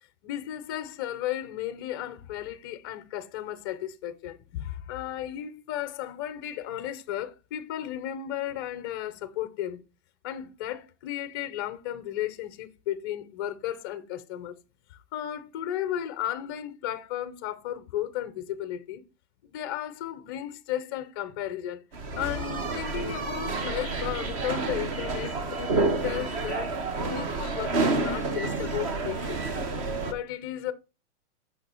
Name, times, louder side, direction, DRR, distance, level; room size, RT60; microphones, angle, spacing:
voice 1, 0.2-9.8 10.2-14.6 14.9-19.1 19.4-21.8 22.1-29.4 30.0-30.7, left 12 dB, 20° left, 0.5 m, -34 dB
sound 1, 21.9-30.1, right 3 dB, 30° right, 0.8 m, -29 dB
6.5 x 5.5 x 4.3 m
supercardioid pair, 175°, 35 cm